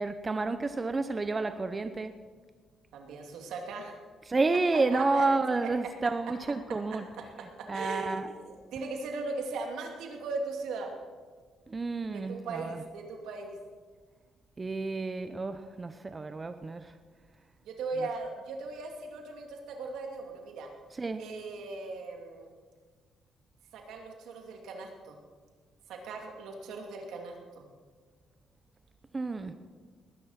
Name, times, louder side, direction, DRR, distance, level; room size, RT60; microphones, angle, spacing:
voice 1, 0.0-2.1 4.3-7.0 7.7-8.3 11.7-12.8 14.6-16.9 21.0-21.2 29.1-29.5, right 3 dB, 30° right, 10 dB, 0.8 m, -30 dB
voice 2, 2.9-4.0 4.7-5.3 5.6-5.7 6.9-10.9 12.1-13.6 17.6-20.7 21.2-22.5 23.7-25.2 25.9-27.7, right 3 dB, 80° right, 2 dB, 2.6 m, -38 dB
19.5 x 9.9 x 5.8 m, 1.5 s
cardioid pair, 90°, 0 cm